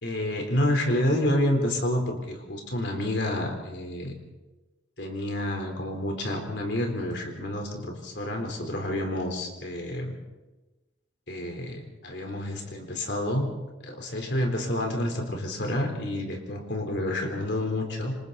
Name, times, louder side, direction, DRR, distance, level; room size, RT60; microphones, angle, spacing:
voice 1, 0.0-4.1 5.0-10.2 11.3-13.5 13.8-18.2, left 1 dB, 60° left, 3 dB, 4.1 m, -29 dB
28.0 x 26.0 x 4.2 m, 1.2 s
head